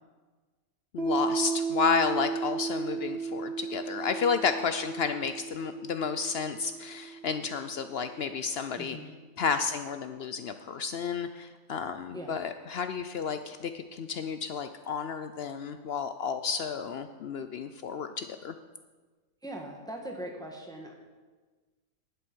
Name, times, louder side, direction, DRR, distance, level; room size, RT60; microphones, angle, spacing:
voice 1, 0.9-9.0 9.4-18.5, left 6 dB, 65° left, 9 dB, 0.6 m, -31 dB
Piano, 1.0-8.2, right 4 dB, 45° right, 1.5 m, -35 dB
voice 2, 8.8-9.1 12.1-12.4 19.4-20.9, right 1 dB, 5° left, 1 dB, 1.3 m, -40 dB
11.0 x 7.9 x 6.1 m, 1.4 s
omnidirectional pair, 1.5 m